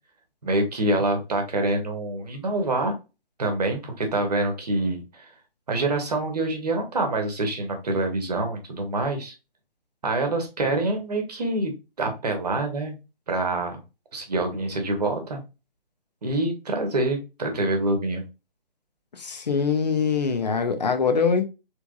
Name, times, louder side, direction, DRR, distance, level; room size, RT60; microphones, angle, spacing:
voice 1, 0.4-2.9 3.4-5.3 5.7-9.3 10.0-11.7 12.0-12.9 13.3-13.8 14.1-15.4 16.2-18.2, right 2 dB, 40° right, 1.1 m, -26 dB
voice 2, 19.2-21.5, left 5 dB, 45° left, 0.7 m, -23 dB
3.4 x 3.1 x 2.4 m
figure-of-eight pair, 150°, 30 cm